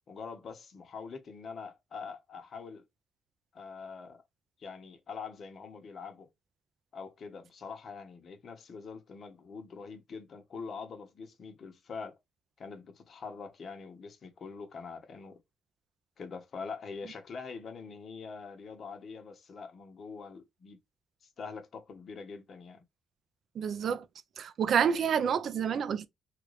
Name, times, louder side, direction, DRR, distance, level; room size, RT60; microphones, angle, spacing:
voice 1, 0.1-2.8 3.5-4.2 4.6-6.3 6.9-12.2 12.6-15.4 16.2-20.8 21.4-22.8, left 5 dB, 50° left, 1.0 m, -44 dB
voice 2, 23.6-24.0 24.4-26.1, right 7 dB, 60° right, 0.5 m, -28 dB
3.1 x 2.5 x 3.1 m
cardioid pair, 90°, 0 cm